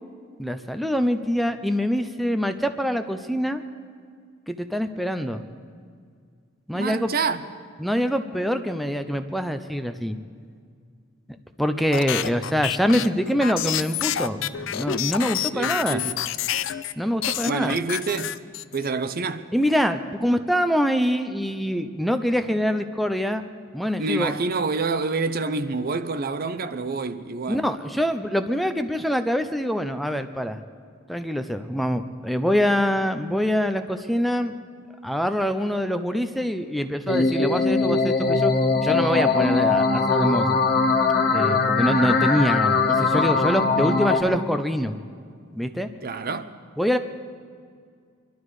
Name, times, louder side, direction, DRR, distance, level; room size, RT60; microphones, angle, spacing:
voice 1, 0.4-3.6 4.5-5.4 6.7-7.1 7.8-10.2 11.6-16.0 17.0-17.8 19.5-23.5 23.7-24.3 27.5-30.6 31.1-34.5 35.0-38.5 38.8-40.6 41.3-44.9 45.5-45.9 46.8-47.0, equal, ahead, 0.5 m, -24 dB
voice 2, 6.7-7.4 15.5-16.2 17.4-18.4 18.7-19.5 24.0-27.7 46.0-46.5, right 3 dB, 45° right, 0.6 m, -27 dB
sound 1, 11.9-16.9 17.2-18.9, left 10 dB, 70° left, 0.5 m, -28 dB
sound 2, 37.1-44.2, left 4 dB, 50° left, 1.6 m, -21 dB
24.5 x 12.0 x 4.8 m
head